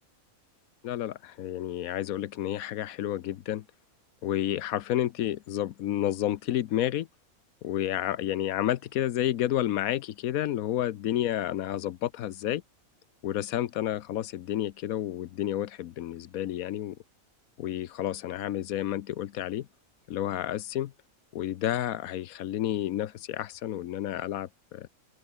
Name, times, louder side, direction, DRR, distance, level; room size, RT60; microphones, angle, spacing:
voice 1, 0.8-3.7 4.2-7.1 7.6-12.6 13.2-17.0 17.6-19.7 20.1-20.9 21.3-24.9, left 12 dB, 80° left, 1.1 m, -30 dB
omnidirectional pair, 1.5 m